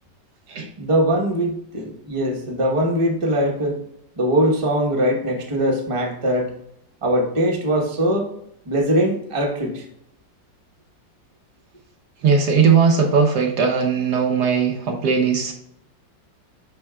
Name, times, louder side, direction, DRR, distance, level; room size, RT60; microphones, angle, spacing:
voice 1, 0.8-3.8 4.2-6.5 7.0-8.3 8.6-9.8, right 1 dB, 20° right, 0 dB, 0.9 m, -21 dB
voice 2, 12.2-15.5, right 5 dB, 65° right, 2 dB, 1.3 m, -18 dB
11.0 x 4.0 x 2.3 m, 0.74 s
omnidirectional pair, 2.0 m